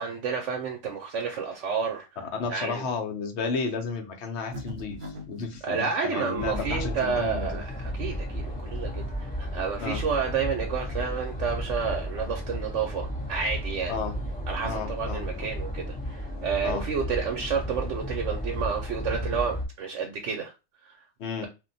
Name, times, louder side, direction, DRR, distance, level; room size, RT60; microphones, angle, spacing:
voice 1, 0.0-2.1 2.5-2.9 5.6-14.0 14.5-20.5 20.8-21.0, right 6 dB, 85° right, 1.0 m, -30 dB
voice 2, 2.2-7.6 9.8-10.0 13.9-14.1 14.6-15.5 16.6-16.8 21.2-21.5, left 5 dB, 70° left, 1.0 m, -32 dB
sound 1, 4.5-5.6, equal, 55° right, 0.7 m, -39 dB
sound 2, 6.4-19.6, equal, 10° left, 0.6 m, -33 dB
2.5 x 2.1 x 3.9 m
omnidirectional pair, 1.2 m